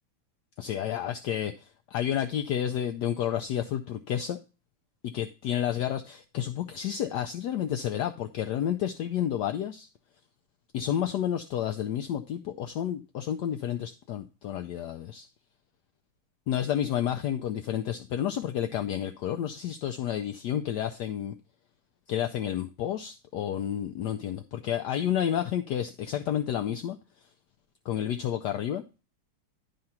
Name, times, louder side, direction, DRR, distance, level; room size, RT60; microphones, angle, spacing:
voice 1, 0.6-4.4 5.0-9.9 10.7-15.3 16.5-21.3 22.1-27.0 27.9-28.8, left 10 dB, 80° left, 0.9 m, -30 dB
11.0 x 3.8 x 5.7 m
omnidirectional pair, 2.4 m